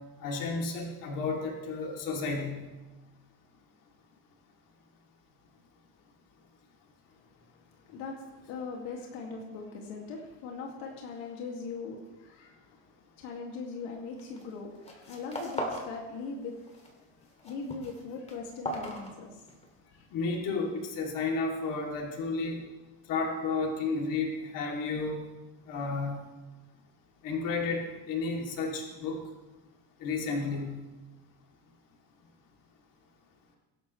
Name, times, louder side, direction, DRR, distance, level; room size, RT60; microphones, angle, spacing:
voice 1, 0.2-2.6 20.1-22.6 23.1-25.2 25.7-26.1 27.2-27.8 28.1-29.2 30.0-30.8, left 4 dB, 55° left, 0 dB, 3.0 m, -32 dB
voice 2, 7.1-12.8 13.1-17.0 17.4-19.4 19.8-20.1, left 4 dB, 85° left, 0 dB, 2.4 m, -41 dB
sound 1, 14.2-14.5 14.8-15.9 16.2-16.9 17.2-19.7, equal, 15° left, 2.5 m, -38 dB
23.5 x 12.0 x 3.3 m, 1.1 s
cardioid pair, 150°, 39 cm